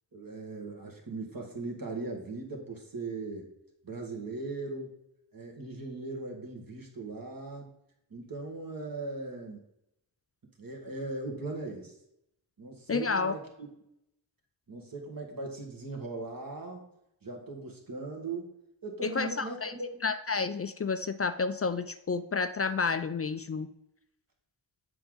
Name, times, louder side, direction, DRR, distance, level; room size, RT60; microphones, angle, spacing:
voice 1, 0.1-3.5 3.8-4.9 5.3-7.7 8.1-9.6 10.6-12.0 12.6-13.7 14.7-16.8 17.2-18.5 18.8-20.0, right 3 dB, 50° right, 1 dB, 1.7 m, -39 dB
voice 2, 12.9-13.3 19.0-19.7 20.0-23.7, left 4 dB, 35° left, 11 dB, 0.4 m, -30 dB
7.0 x 4.8 x 3.8 m, 0.81 s
cardioid pair, 65°, 45 cm